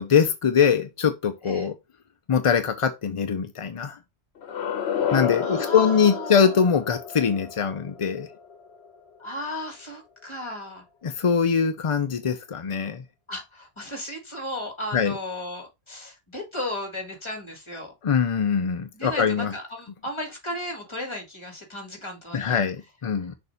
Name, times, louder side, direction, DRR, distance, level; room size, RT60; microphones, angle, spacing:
voice 1, 0.0-1.7 2.3-4.0 5.1-8.3 11.0-13.0 14.9-15.2 18.0-19.5 22.3-23.3, left 6 dB, 50° left, 0.4 m, -22 dB
sound 1, 4.4-9.3, left 8 dB, 70° left, 1.1 m, -31 dB
voice 2, 5.4-6.6 9.2-10.8 13.3-17.9 18.9-22.7, left 1 dB, 25° left, 1.7 m, -35 dB
6.6 x 2.6 x 5.6 m
omnidirectional pair, 1.2 m